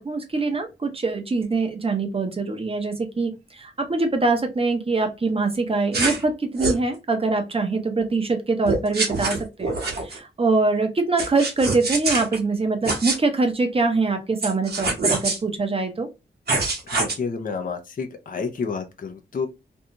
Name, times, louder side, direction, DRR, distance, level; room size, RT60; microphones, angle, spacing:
voice 1, 0.0-16.1, right 3 dB, 30° right, 0.6 m, -24 dB
sound 1, 5.9-6.2 6.6-6.8 8.6-10.2 11.2-12.4 12.8-13.2 14.4-15.4 16.5-17.2, right 3 dB, 55° right, 0.9 m, -24 dB
voice 2, 16.8-19.5, left 5 dB, 45° left, 0.5 m, -30 dB
2.6 x 2.3 x 2.8 m
wide cardioid pair, 150°, 19 cm